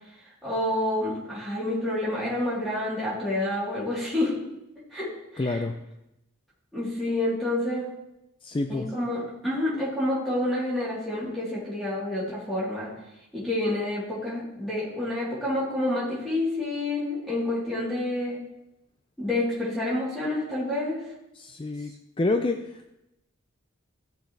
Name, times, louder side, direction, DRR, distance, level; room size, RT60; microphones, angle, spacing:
voice 1, 0.4-4.3 4.9-5.6 6.7-7.8 8.7-12.9 13.3-18.4 19.2-21.0, left 1 dB, ahead, -9 dB, 3.4 m, -28 dB
voice 2, 5.4-5.8 8.4-8.9 21.3-21.9 22.2-22.9, left 2 dB, 25° left, 6 dB, 0.4 m, -28 dB
14.5 x 6.4 x 3.3 m, 0.88 s
head